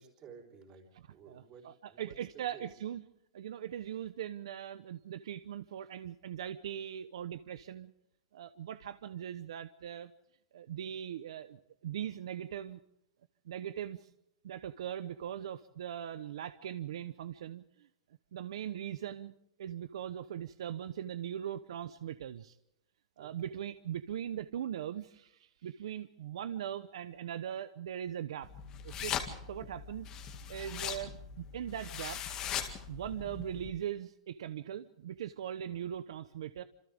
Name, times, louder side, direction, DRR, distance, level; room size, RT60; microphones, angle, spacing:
voice 1, 0.0-2.8 23.2-23.6, right 6 dB, 20° right, 1 dB, 4.2 m, -54 dB
voice 2, 1.3-3.0 3.3-7.9 8.3-10.1 10.5-12.8 13.4-14.1 14.4-17.9 18.3-19.3 19.6-22.6 23.2-28.5 28.8-29.2 29.5-30.1 30.5-32.2 32.9-36.6, right 10 dB, 65° right, 13 dB, 0.9 m, -40 dB
sound 1, 28.4-33.7, left 8 dB, 20° left, 2.0 m, -40 dB
29.0 x 27.0 x 3.6 m, 0.79 s
supercardioid pair, 180°, 3 cm